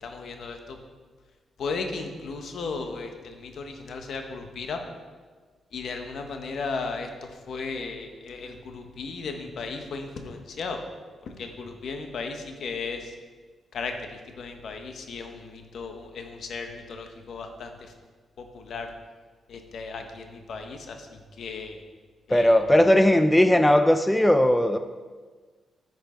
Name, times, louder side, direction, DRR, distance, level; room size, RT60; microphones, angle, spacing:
voice 1, 0.0-0.8 1.6-4.8 5.7-10.8 11.2-13.1 13.7-17.8 18.4-18.9 19.5-21.8 22.3-22.5, left 4 dB, 65° left, 5 dB, 1.1 m, -35 dB
voice 2, 22.3-24.8, left 1 dB, 5° left, 8 dB, 0.4 m, -18 dB
10.0 x 6.1 x 4.4 m, 1.4 s
cardioid pair, 105°, 0 cm